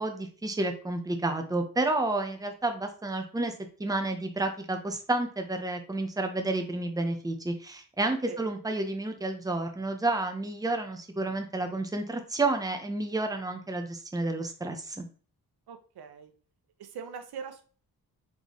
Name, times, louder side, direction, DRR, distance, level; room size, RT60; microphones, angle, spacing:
voice 1, 0.0-3.5 3.8-15.0, right 2 dB, 10° right, 5 dB, 0.7 m, -30 dB
voice 2, 15.7-16.3 16.8-17.6, right 6 dB, 85° right, 7 dB, 0.7 m, -41 dB
4.0 x 3.6 x 3.1 m, 0.40 s
cardioid pair, 85°, 38 cm